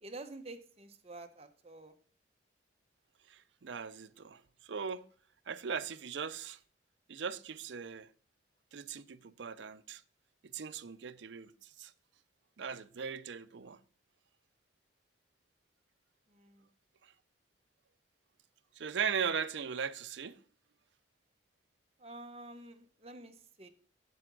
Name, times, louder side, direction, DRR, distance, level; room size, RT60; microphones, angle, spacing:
voice 1, 0.0-1.9 16.3-16.6 22.0-23.7, right 2 dB, 30° right, 0.9 m, -49 dB
voice 2, 3.3-4.4 4.7-5.0 5.5-6.6 7.1-8.1 8.7-10.0 10.5-11.5 11.8-11.9 12.6-13.8 18.8-20.4, right 6 dB, 70° right, 0.5 m, -38 dB
7.9 x 7.7 x 3.8 m
head